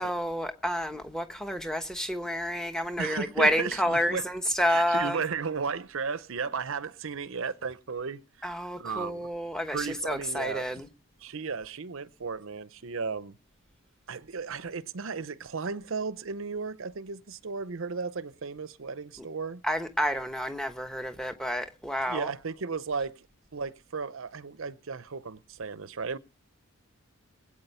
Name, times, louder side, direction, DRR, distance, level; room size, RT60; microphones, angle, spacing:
voice 1, 0.0-5.2 8.4-10.9 19.6-22.3, equal, 5° left, 1.1 m, -29 dB
voice 2, 3.0-4.2 4.6-8.5 8.8-9.3 9.7-10.7 11.2-13.3 14.1-19.6 22.1-23.3 23.5-26.2, right 5 dB, 65° right, 0.7 m, -34 dB
21.0 x 8.7 x 5.5 m
head